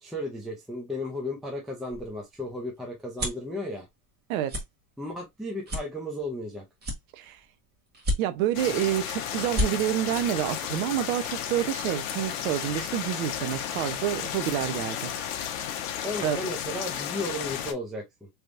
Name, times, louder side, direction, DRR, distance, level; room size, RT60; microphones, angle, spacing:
voice 1, 0.0-3.9 5.0-6.6 16.0-18.3, left 1 dB, ahead, 0.4 m, -34 dB
sound 1, 1.9-3.5 4.0-4.2 4.5-4.7 5.1-5.2 5.7-6.4 6.8-7.5 7.9-8.6 9.0-9.1 9.4-9.7, left 1 dB, 20° right, 1.4 m, -30 dB
voice 2, 8.2-15.1 16.2-16.4, right 12 dB, 65° right, 0.8 m, -28 dB
sound 2, 8.5-17.7, left 9 dB, 60° left, 0.9 m, -33 dB
3.4 x 3.1 x 2.5 m
supercardioid pair, 140°, 45 cm